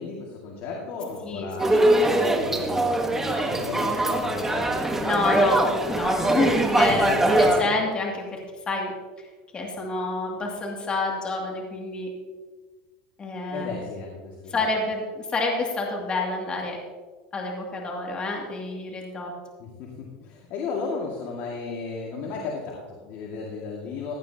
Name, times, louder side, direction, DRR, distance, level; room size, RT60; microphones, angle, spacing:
voice 1, 0.0-4.7 6.8-7.2 13.5-14.7 19.6-24.2, left 4 dB, 55° left, -1 dB, 2.1 m, -34 dB
voice 2, 1.2-1.9 5.0-8.4 8.7-8.9 9.5-12.1 13.2-13.8 14.5-16.8 17.3-19.3, left 3 dB, 25° left, -1 dB, 2.5 m, -28 dB
sound 1, 1.6-7.6, right 1 dB, 10° right, 1.3 m, -22 dB
16.0 x 11.0 x 2.9 m, 1.4 s
supercardioid pair, 130°, 4 cm